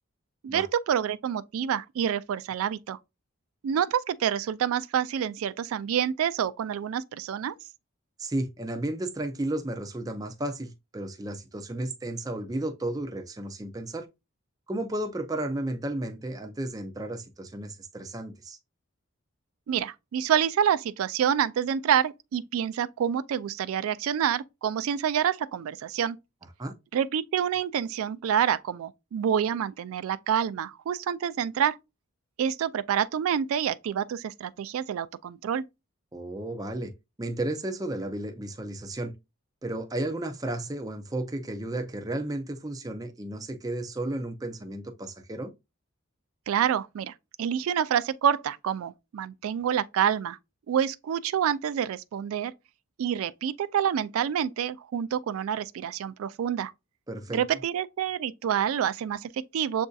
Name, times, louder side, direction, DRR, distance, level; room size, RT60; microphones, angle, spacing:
voice 1, 0.4-3.0 3.6-7.5 19.7-26.2 26.9-31.8 32.4-35.6 46.5-50.4 50.7-52.5 53.0-56.7 57.3-59.9, right 8 dB, 80° right, 0.3 m, -27 dB
voice 2, 8.2-14.1 14.7-18.6 26.6-26.7 36.1-36.9 37.2-39.2 39.6-45.5 57.1-57.4, right 1 dB, 15° right, 0.5 m, -33 dB
7.2 x 2.6 x 2.3 m
head